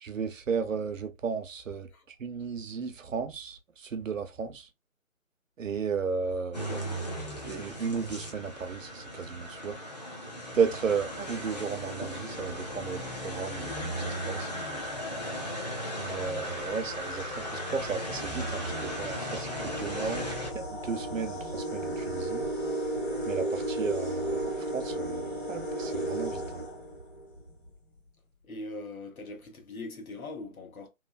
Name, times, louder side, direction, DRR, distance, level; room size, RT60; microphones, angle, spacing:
voice 1, 0.0-1.9 2.2-4.7 5.6-6.8 7.4-9.8 10.5-14.5 16.0-20.3 20.5-22.5 23.3-26.6, right 5 dB, 65° right, 0.7 m, -34 dB
sound 1, 6.5-20.5, equal, 30° left, 0.6 m, -36 dB
sound 2, 17.7-27.5, right 1 dB, 45° left, 1.3 m, -34 dB
voice 2, 28.5-30.9, left 2 dB, 85° left, 1.1 m, -41 dB
3.1 x 2.0 x 2.3 m
figure-of-eight pair, 160°, 41 cm